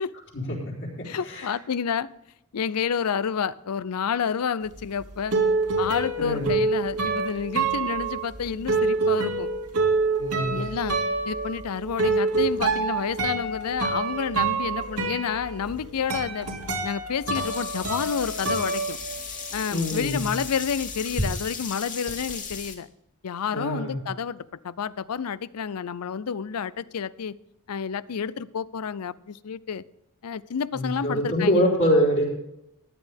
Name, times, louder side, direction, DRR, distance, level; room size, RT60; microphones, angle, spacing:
voice 1, 0.3-1.5 6.2-6.5 10.2-10.6 19.7-20.3 23.5-24.0 30.7-32.2, equal, 55° left, -3 dB, 4.1 m, -25 dB
voice 2, 1.0-2.1 2.5-5.4 5.8-9.5 10.5-11.0 11.3-16.5 16.8-19.0 19.5-22.9 23.2-27.4 27.7-29.8 30.2-31.6, left 7 dB, 80° left, 19 dB, 0.5 m, -29 dB
sound 1, 4.7-19.6 19.8-21.3, right 4 dB, 80° right, 2.2 m, -27 dB
Sink (filling or washing), 17.3-22.7, left 5 dB, 35° left, 2.1 m, -36 dB
15.0 x 10.5 x 3.5 m, 0.86 s
head